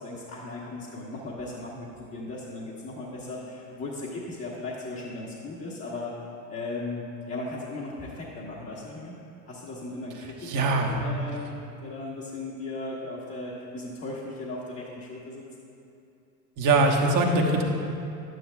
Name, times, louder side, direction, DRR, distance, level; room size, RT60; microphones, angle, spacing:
voice 1, 0.0-6.1 6.5-9.1 9.5-15.5, left 2 dB, 30° left, -6 dB, 1.3 m, -37 dB
voice 2, 10.4-10.9 16.6-17.6, right 2 dB, 40° right, 0 dB, 1.3 m, -22 dB
11.5 x 9.3 x 2.3 m, 2.6 s
hypercardioid pair, 85°, 49 cm